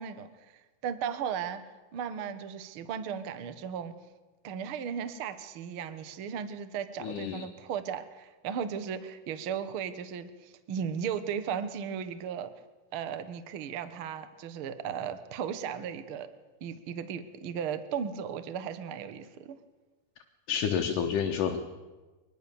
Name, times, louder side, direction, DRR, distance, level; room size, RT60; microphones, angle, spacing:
voice 1, 0.0-1.6 1.9-3.9 4.4-12.5 12.9-16.3 16.6-19.6, right 7 dB, 70° right, 12 dB, 1.2 m, -36 dB
voice 2, 7.0-7.4 20.5-21.7, left 7 dB, 70° left, 3 dB, 2.5 m, -29 dB
24.0 x 20.5 x 7.0 m, 1.2 s
omnidirectional pair, 4.4 m